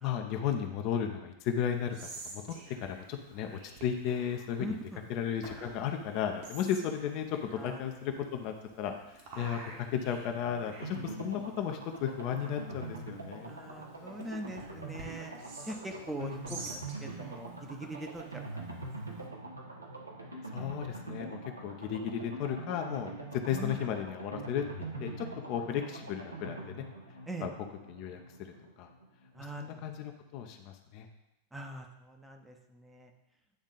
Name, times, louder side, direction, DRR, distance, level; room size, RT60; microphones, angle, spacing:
voice 1, 0.0-4.8 5.1-13.5 16.2-16.6 20.5-24.6 25.0-26.8 27.4-27.5 27.9-28.9 29.6-31.1, left 8 dB, 45° left, 5 dB, 0.6 m, -35 dB
Whispering, 1.7-19.3, right 3 dB, 50° right, 1.5 m, -51 dB
voice 2, 4.6-5.0 7.6-8.1 9.4-9.5 13.5-15.3 15.6-18.5 19.1-19.3 23.5-23.8 27.3-27.5 29.3-29.9 31.5-33.1, right 1 dB, 5° right, 3 dB, 0.7 m, -42 dB
sound 1, 10.8-29.4 29.7-29.8 30.1-30.2, right 2 dB, 80° right, 1.0 m, -44 dB
9.3 x 3.6 x 3.9 m, 0.90 s
figure-of-eight pair, 90°, 0 cm